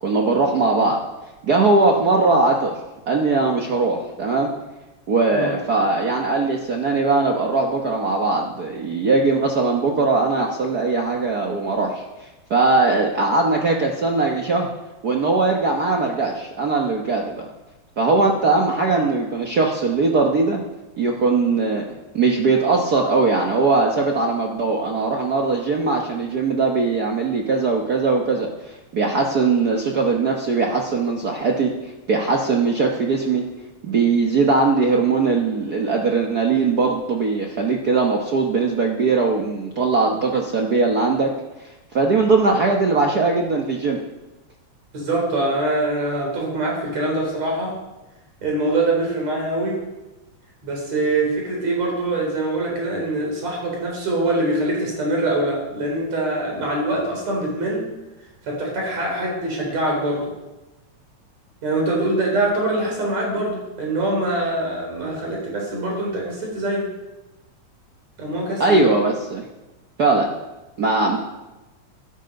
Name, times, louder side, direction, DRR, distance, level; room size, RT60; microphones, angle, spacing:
voice 1, 0.0-1.0 1.4-2.7 3.1-4.5 5.1-14.7 15.0-17.5 18.0-20.6 21.0-21.9 22.1-33.4 33.8-41.3 41.6-44.0 68.6-69.4 70.0-70.3 70.8-71.2, right 3 dB, 80° right, 0 dB, 0.8 m, -20 dB
voice 2, 44.9-47.8 48.4-49.8 50.6-57.9 58.4-60.3 61.6-66.9 68.2-68.8, right 2 dB, 60° right, -1 dB, 5.1 m, -24 dB
12.5 x 12.0 x 5.3 m, 1.0 s
omnidirectional pair, 3.4 m